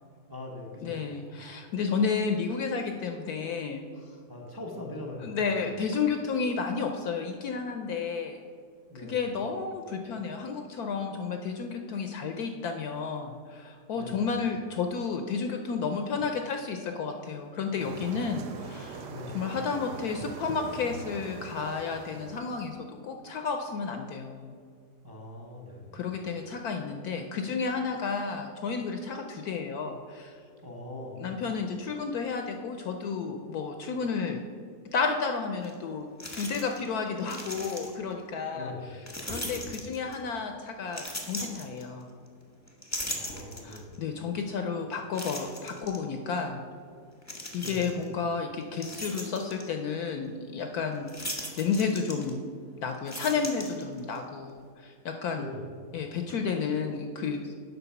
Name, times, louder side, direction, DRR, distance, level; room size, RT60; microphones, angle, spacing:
voice 1, 0.3-1.0 4.3-5.5 8.9-9.2 13.9-14.3 19.1-19.4 25.0-26.0 30.6-31.3 38.5-38.9 43.1-44.0 47.6-47.9 55.3-55.7, left 2 dB, 15° right, 0 dB, 0.7 m, -41 dB
voice 2, 0.8-3.8 5.2-8.4 8.9-24.5 25.9-30.3 31.2-34.4 34.8-38.7 39.2-42.1 43.6-46.6 47.5-52.4 52.8-55.4 55.9-57.5, left 5 dB, 70° left, 5 dB, 0.9 m, -32 dB
sound 1, 17.8-22.8, right 4 dB, 75° right, 1.3 m, -42 dB
sound 2, 35.6-35.7 36.2-36.9 37.2-38.1 39.1-40.3 40.9-42.3 42.7-44.0 44.5-44.6 45.1-46.0 47.2-48.1 48.5-49.7 51.1-52.6 52.9-54.2, left 1 dB, 15° left, 0.6 m, -38 dB
8.0 x 5.7 x 5.7 m, 2.2 s
omnidirectional pair, 2.0 m